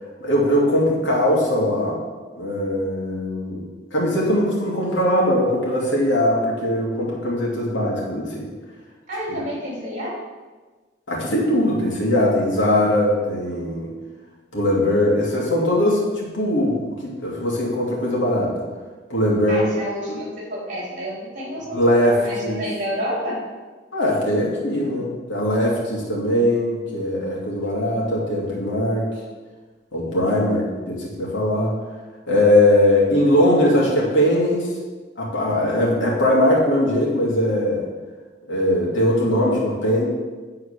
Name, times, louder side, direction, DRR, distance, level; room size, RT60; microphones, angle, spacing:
voice 1, 0.2-2.0 2.4-3.6 3.9-8.5 9.3-9.4 11.1-13.9 14.5-18.6 19.1-19.7 21.7-22.2 22.4-22.6 23.9-29.1 29.9-31.8 32.3-34.7 35.2-37.9 38.5-40.1, left 1 dB, 80° left, -3 dB, 2.7 m, -20 dB
voice 2, 9.1-10.2 15.0-15.2 19.5-23.4 24.7-25.0 30.2-30.8, equal, 40° right, -3 dB, 3.3 m, -30 dB
9.4 x 4.6 x 6.6 m, 1.3 s
head